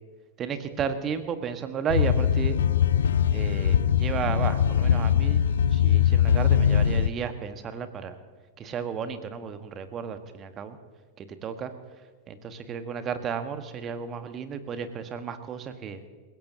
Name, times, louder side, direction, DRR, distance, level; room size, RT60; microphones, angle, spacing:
voice 1, 0.4-2.6 3.3-5.4 5.7-8.2 8.6-10.8 11.2-11.7 12.3-16.0, right 7 dB, 30° right, 9 dB, 1.4 m, -33 dB
sound 1, 1.9-7.1, left 9 dB, 65° left, 0.5 m, -22 dB
28.5 x 17.0 x 2.8 m, 1.5 s
figure-of-eight pair, 90°, 0 cm